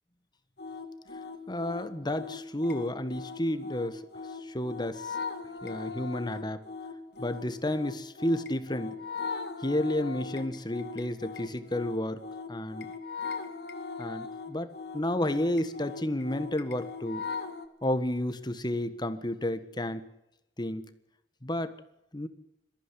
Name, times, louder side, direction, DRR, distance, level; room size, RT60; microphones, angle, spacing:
sound 1, 0.6-17.7, left 4 dB, 65° left, 2.3 m, -39 dB
voice 1, 1.5-4.0 4.4-5.1 5.6-6.6 7.2-9.0 9.6-12.2 12.5-12.9 14.0-14.7 14.9-17.2 17.8-20.0 20.6-20.9 21.4-21.7 22.1-22.3, left 1 dB, 25° left, 12 dB, 1.5 m, -31 dB
22.5 x 15.0 x 10.0 m, 0.89 s
head